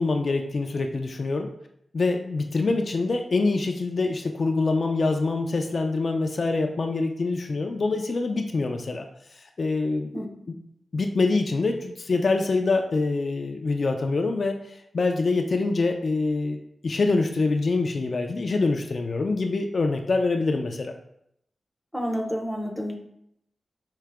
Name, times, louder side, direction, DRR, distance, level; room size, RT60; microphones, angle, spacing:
voice 1, 0.0-1.5 1.9-9.1 9.3-10.1 10.5-10.6 10.9-21.0, left 3 dB, 50° left, 4 dB, 0.3 m, -25 dB
voice 2, 21.9-23.0, equal, ahead, 1 dB, 0.6 m, -29 dB
4.7 x 2.8 x 3.4 m, 0.74 s
wide cardioid pair, 150°, 0 cm